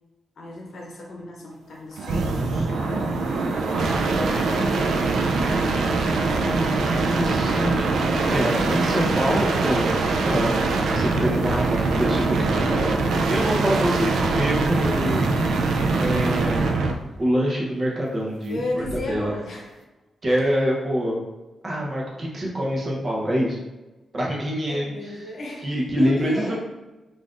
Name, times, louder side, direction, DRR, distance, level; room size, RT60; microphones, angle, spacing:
voice 1, 0.4-3.4 3.7-5.3 8.2-8.8 12.9-13.4 18.5-19.8 24.6-26.6, left 2 dB, 55° left, -1 dB, 0.8 m, -35 dB
sound 1, 2.0-17.0 18.8-19.3, right 3 dB, 85° right, 0.4 m, -23 dB
voice 2, 6.4-9.9 10.2-12.9 13.3-15.2 15.9-16.8 17.2-19.3 20.2-21.2 21.6-23.6 24.1-24.9 25.6-26.6, equal, 30° right, -3 dB, 0.8 m, -25 dB
5.6 x 2.5 x 2.5 m, 1.1 s
wide cardioid pair, 145°, 0 cm